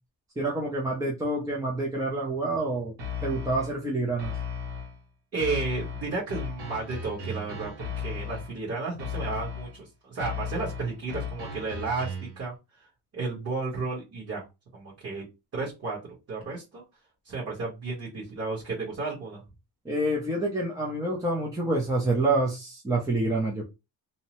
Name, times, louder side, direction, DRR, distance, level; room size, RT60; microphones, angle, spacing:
voice 1, 0.4-2.9 3.2-4.3 19.9-23.6, right 2 dB, 10° right, 0.4 m, -27 dB
sound 1, 3.0-3.8 4.2-5.0 5.4-8.6 9.0-9.8 10.2-12.4, left 5 dB, 90° right, 1.2 m, -36 dB
voice 2, 5.3-12.5 13.1-14.4 14.7-15.2 15.5-16.0 16.3-16.8 17.2-19.4, right 3 dB, 35° right, 1.1 m, -33 dB
2.7 x 2.0 x 2.9 m
cardioid pair, 160°, 41 cm